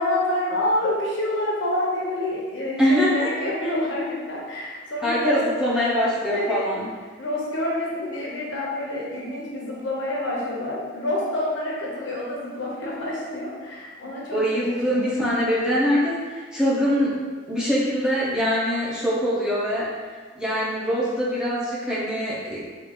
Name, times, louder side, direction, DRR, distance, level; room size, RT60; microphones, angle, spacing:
voice 1, 0.0-5.4 6.3-6.8 7.2-14.4 14.9-15.0, left 1 dB, 75° left, -4 dB, 0.8 m, -27 dB
voice 2, 2.8-3.3 5.0-6.9 14.3-17.1 17.5-19.9 20.4-22.7, equal, 5° right, -8 dB, 0.6 m, -23 dB
3.6 x 2.4 x 2.9 m, 1.4 s
head